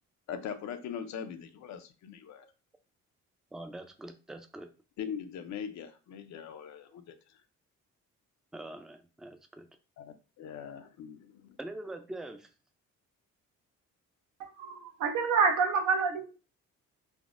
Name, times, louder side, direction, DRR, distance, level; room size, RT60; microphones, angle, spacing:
voice 1, 0.3-2.5 5.0-7.1 10.0-11.6, left 8 dB, 65° left, 0.5 m, -41 dB
voice 2, 3.5-4.7 8.5-9.7 11.6-12.5, right 1 dB, ahead, 0.3 m, -43 dB
voice 3, 14.4-16.3, right 5 dB, 80° right, 0.8 m, -27 dB
3.4 x 2.0 x 2.5 m
cardioid pair, 90°, 30 cm